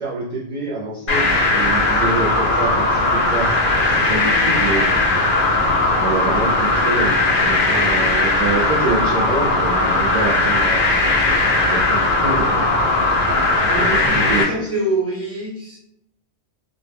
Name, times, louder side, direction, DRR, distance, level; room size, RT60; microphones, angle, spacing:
voice 1, 0.0-4.9 6.0-10.9 11.7-12.8 13.7-14.7, right 3 dB, 60° right, -3 dB, 0.5 m, -26 dB
sound 1, 1.1-14.4, left 2 dB, 55° left, 0.7 m, -18 dB
voice 2, 13.6-15.8, right 2 dB, 15° right, -4 dB, 0.8 m, -25 dB
2.1 x 2.1 x 3.3 m, 0.78 s
omnidirectional pair, 1.1 m